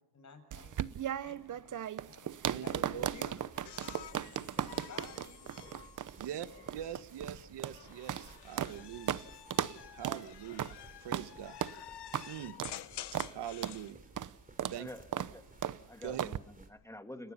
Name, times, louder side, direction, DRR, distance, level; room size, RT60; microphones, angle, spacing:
voice 1, 0.1-0.8 1.2-1.8 2.1-4.4 4.7-5.8 6.2-6.6, left 4 dB, 40° left, 6 dB, 7.5 m, -53 dB
sound 1, 0.5-8.8 9.1-9.2 9.5-9.8 10.0-10.2 10.6-10.8 11.1-11.3 11.6-11.8 12.1-12.3 12.6-12.8 13.1-13.3 13.6-13.8 14.2-14.3 14.6-14.8 15.1-15.3 15.6-15.8 16.2-16.4, right 10 dB, 45° right, 0.9 m, -36 dB
voice 2, 2.5-3.1 6.2-9.2 9.9-11.6 12.3-12.6 13.3-14.0 14.7-14.9 16.0-16.3, right 10 dB, 70° right, 13 dB, 1.4 m, -43 dB
sound 2, 2.9-16.7, right 2 dB, 20° right, 3.5 m, -58 dB
sound 3, 3.6-6.9 7.7-13.9 15.4-15.9, left 12 dB, 70° left, 1.1 m, -50 dB
voice 3, 14.8-15.4 15.9-17.3, left 1 dB, 5° left, 7 dB, 2.0 m, -48 dB
30.0 x 18.5 x 5.7 m, 0.84 s
cardioid pair, 115°, 42 cm